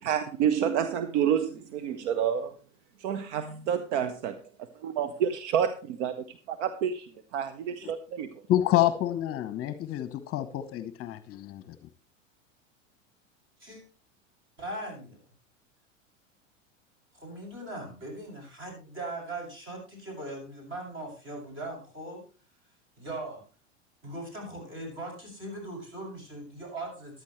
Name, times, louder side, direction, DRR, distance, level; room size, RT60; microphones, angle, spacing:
voice 1, 0.0-2.5 3.0-4.4 4.8-7.1 7.3-8.3, right 8 dB, 60° right, 10 dB, 1.1 m, -29 dB
voice 2, 8.5-11.6, left 13 dB, 35° left, 13 dB, 1.0 m, -28 dB
voice 3, 14.6-15.2 17.1-22.2 23.0-23.4 24.0-27.2, right 2 dB, 30° right, 1 dB, 7.1 m, -39 dB
14.0 x 11.5 x 3.2 m, 0.35 s
hypercardioid pair, 90°, 38 cm